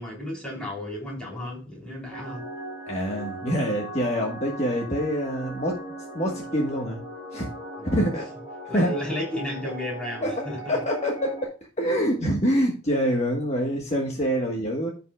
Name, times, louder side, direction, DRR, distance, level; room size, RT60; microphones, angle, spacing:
voice 1, 0.0-2.5 7.8-8.1 8.7-10.7, left 1 dB, 5° left, 3.8 m, -33 dB
sound 1, 2.1-11.5, right 1 dB, 15° right, 3.0 m, -38 dB
voice 2, 2.9-5.8 6.1-7.0 7.3-7.5 7.8-8.3 8.7-8.9 10.2-14.9, equal, 30° left, 1.4 m, -26 dB
14.5 x 5.6 x 2.3 m
head